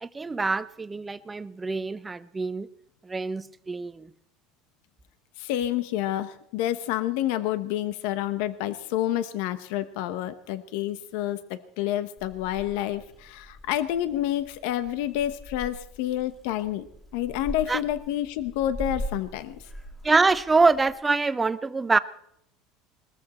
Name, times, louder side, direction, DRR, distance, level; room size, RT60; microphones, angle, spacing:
voice 1, 0.0-2.7 3.0-4.1 17.7-17.8 20.0-22.0, right 3 dB, 15° right, 14 dB, 0.6 m, -25 dB
voice 2, 5.4-16.9 17.1-19.6, left 12 dB, 75° left, 13 dB, 1.0 m, -29 dB
Purr / Meow, 12.2-21.0, equal, 10° left, 2.9 m, -41 dB
20.5 x 14.0 x 4.3 m, 0.74 s
supercardioid pair, 140°, 0 cm